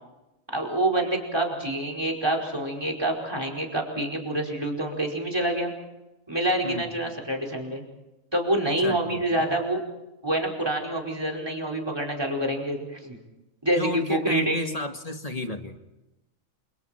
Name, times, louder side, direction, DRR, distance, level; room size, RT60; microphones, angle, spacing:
voice 1, 0.5-5.7 6.3-7.8 8.3-9.8 10.2-13.2 13.6-14.6, right 1 dB, 15° right, 3 dB, 5.0 m, -27 dB
voice 2, 6.6-7.1 8.8-9.6 13.8-15.8, left 2 dB, 25° left, 6 dB, 1.8 m, -33 dB
29.0 x 28.5 x 4.4 m, 0.98 s
omnidirectional pair, 1.4 m